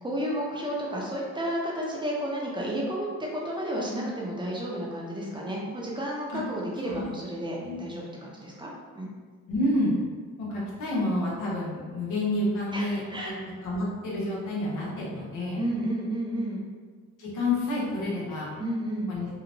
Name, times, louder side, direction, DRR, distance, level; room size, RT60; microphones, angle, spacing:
voice 1, 0.0-9.1 12.7-13.3 15.6-16.6 18.6-19.1, right 1 dB, 15° right, -4 dB, 0.5 m, -32 dB
voice 2, 9.5-9.9 10.4-13.3 13.6-15.6 17.2-18.5 19.1-19.3, left 1 dB, 85° left, -6 dB, 0.9 m, -29 dB
2.9 x 2.0 x 2.6 m, 1.5 s
cardioid pair, 90°, 30 cm